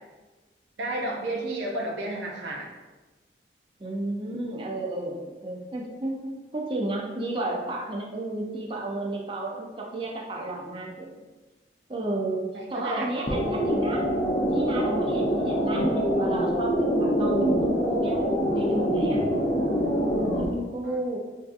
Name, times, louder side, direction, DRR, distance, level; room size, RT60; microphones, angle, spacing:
voice 1, 0.8-2.7 12.5-13.1 20.8-21.0, right 1 dB, 85° right, 0 dB, 0.5 m, -31 dB
voice 2, 3.8-11.3 11.9-14.1 14.5-18.2 18.5-19.2 20.3-21.2, right 2 dB, 30° right, -1 dB, 0.4 m, -32 dB
sound 1, 13.3-20.4, equal, 45° left, 0.6 m, -25 dB
3.5 x 2.6 x 2.4 m, 1.2 s
head